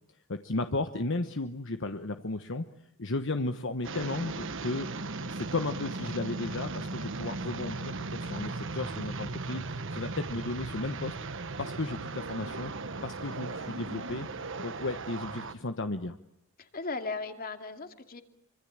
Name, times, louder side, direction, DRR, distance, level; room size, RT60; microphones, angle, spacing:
voice 1, 0.3-2.6 3.0-4.9 5.2-11.1 11.6-12.7 13.0-16.2, left 2 dB, 60° left, 8 dB, 1.2 m, -34 dB
sound 1, 3.8-15.5, right 3 dB, 60° right, 1.4 m, -37 dB
voice 2, 16.6-18.2, left 3 dB, 45° left, 7 dB, 2.5 m, -37 dB
26.0 x 25.5 x 8.8 m, 0.71 s
head